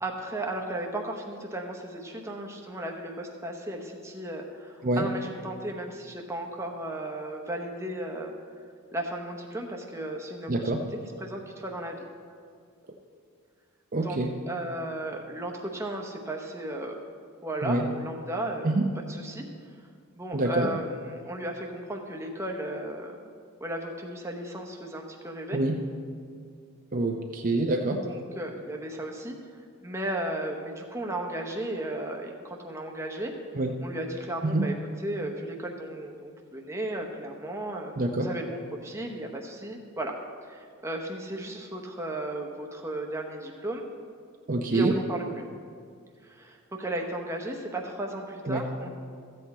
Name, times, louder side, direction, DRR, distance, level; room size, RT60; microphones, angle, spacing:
voice 1, 0.0-8.3 8.9-10.8 11.2-12.0 14.0-14.2 14.5-17.0 17.4-18.8 19.1-19.4 20.1-23.1 23.6-25.6 28.0-29.3 29.8-33.3 33.8-37.9 38.2-40.1 40.5-43.8 44.7-45.2 46.2-48.9, right 1 dB, 10° right, 1 dB, 0.9 m, -35 dB
voice 2, 10.5-10.8 13.9-14.3 17.6-17.9 18.6-18.9 20.3-20.7 25.5-25.8 26.9-28.0 33.6-33.7 34.4-34.7 38.0-38.3 44.5-44.9 48.5-48.6, right 2 dB, 40° right, 2 dB, 0.6 m, -26 dB
14.0 x 8.1 x 4.2 m, 2.1 s
head